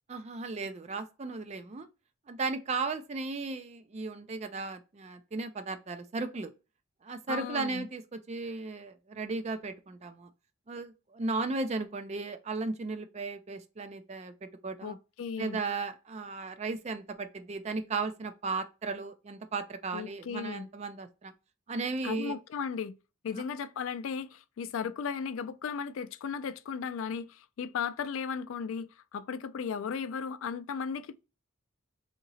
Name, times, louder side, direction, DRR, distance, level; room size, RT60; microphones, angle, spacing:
voice 1, 0.1-1.9 2.3-6.5 7.0-10.3 10.7-15.0 15.4-21.3 21.7-22.3 23.3-23.4, right 3 dB, 30° right, 0.4 m, -35 dB
voice 2, 7.3-7.9 14.8-15.6 19.9-20.7 22.0-23.0 23.2-31.2, left 6 dB, 70° left, 0.3 m, -36 dB
2.9 x 2.8 x 4.0 m
head